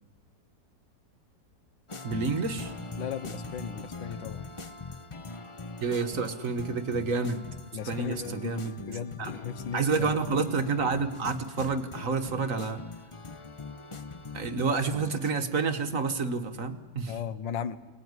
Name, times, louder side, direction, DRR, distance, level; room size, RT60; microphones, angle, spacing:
sound 1, 1.9-15.3, left 3 dB, 40° left, 0.4 m, -42 dB
voice 1, 2.0-2.7 5.8-7.5 7.9-8.8 9.2-9.3 9.7-12.8 14.3-17.1, right 4 dB, 50° right, 8 dB, 1.5 m, -29 dB
voice 2, 3.0-4.4 7.7-10.2 17.1-17.8, left 8 dB, 85° left, 14 dB, 1.7 m, -36 dB
24.0 x 19.0 x 9.6 m, 1.2 s
omnidirectional pair, 2.0 m